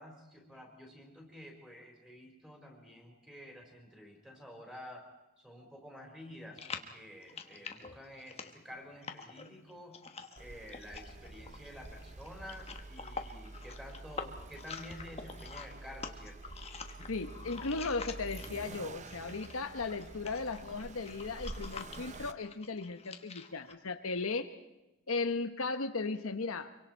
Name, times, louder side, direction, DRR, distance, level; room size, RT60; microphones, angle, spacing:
voice 1, 0.0-5.1 5.4-10.0 10.4-16.5, left 1 dB, 5° right, 2 dB, 4.3 m, -50 dB
sound 1, 6.5-18.7 19.1-23.7, left 5 dB, 30° left, 1.2 m, -47 dB
Accelerating revving vroom, 10.4-22.3, right 2 dB, 30° right, 0.7 m, -48 dB
voice 2, 17.1-24.5 25.1-26.7, left 3 dB, 70° left, 8 dB, 1.0 m, -36 dB
25.5 x 24.0 x 4.5 m, 1.0 s
head